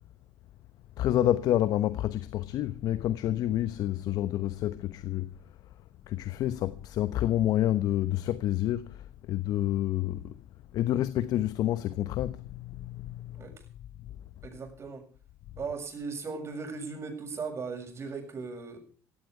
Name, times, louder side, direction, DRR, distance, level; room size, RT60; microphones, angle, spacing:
voice 1, 1.0-5.3 6.1-10.4 10.7-13.4, left 13 dB, 65° left, 1.0 m, -28 dB
voice 2, 14.4-15.1 15.6-18.8, right 4 dB, 40° right, 7.5 m, -37 dB
16.5 x 16.0 x 4.8 m
supercardioid pair, 80°, 7 cm